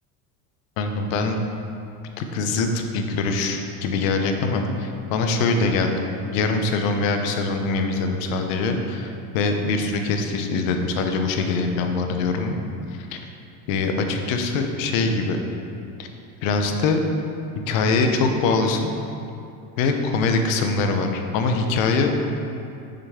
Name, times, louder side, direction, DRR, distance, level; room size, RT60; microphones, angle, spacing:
voice 1, 0.8-1.4 2.2-6.0 6.2-12.6 12.9-13.2 13.7-15.4 16.0-16.1 16.4-17.0 17.7-18.9 19.8-22.1, left 3 dB, 85° left, 5 dB, 0.8 m, -23 dB
6.4 x 6.0 x 3.6 m, 2.6 s
supercardioid pair, 125°, 39 cm